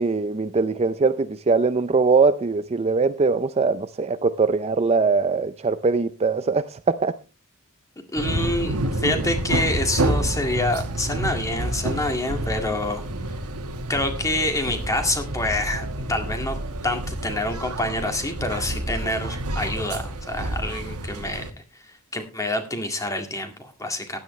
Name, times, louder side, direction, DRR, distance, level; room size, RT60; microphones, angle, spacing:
voice 1, 0.0-7.2, right 4 dB, 30° right, 0.5 m, -21 dB
voice 2, 8.1-13.0 13.9-16.6 16.8-24.2, left 1 dB, 15° left, 2.0 m, -27 dB
sound 1, 8.2-21.5, right 1 dB, 80° right, 1.5 m, -28 dB
15.5 x 11.0 x 3.2 m
head